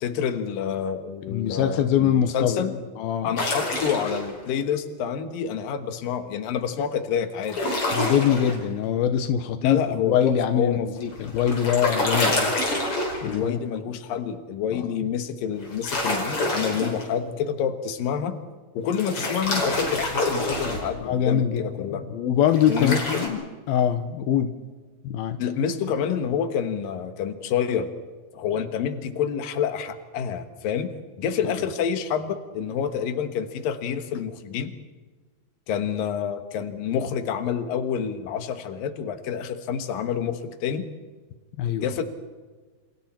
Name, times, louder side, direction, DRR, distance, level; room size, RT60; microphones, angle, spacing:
voice 1, 0.0-2.8 3.2-7.6 9.6-10.9 13.2-18.4 18.7-22.1 22.7-23.2 25.4-27.9 28.3-34.7 35.7-40.9 41.8-42.0, left 7 dB, 70° left, 7 dB, 3.1 m, -28 dB
voice 2, 1.3-2.6 3.0-3.3 7.9-12.5 13.2-13.6 14.7-14.9 21.0-21.6 22.1-24.5 25.0-25.4 41.6-41.8, left 9 dB, 85° left, 8 dB, 3.0 m, -23 dB
sound 1, 3.4-4.3 7.4-8.6 11.0-13.4 15.6-17.0 18.9-20.9 22.5-23.3, left 1 dB, 35° left, 5.6 m, -27 dB
29.5 x 29.0 x 4.5 m, 1.3 s
omnidirectional pair, 4.2 m